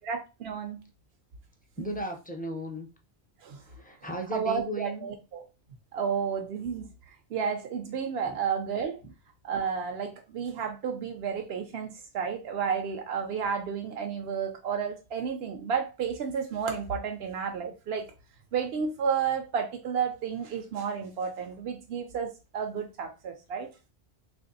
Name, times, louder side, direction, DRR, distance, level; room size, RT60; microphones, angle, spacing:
voice 1, 0.0-0.8 3.4-3.6 4.3-5.5 5.9-9.0 9.4-18.1 18.5-23.7, right 6 dB, 75° right, 0.9 m, -32 dB
voice 2, 1.8-2.9 3.6-5.1 8.3-8.4, equal, 10° left, 0.5 m, -35 dB
3.1 x 2.5 x 3.9 m
omnidirectional pair, 1.1 m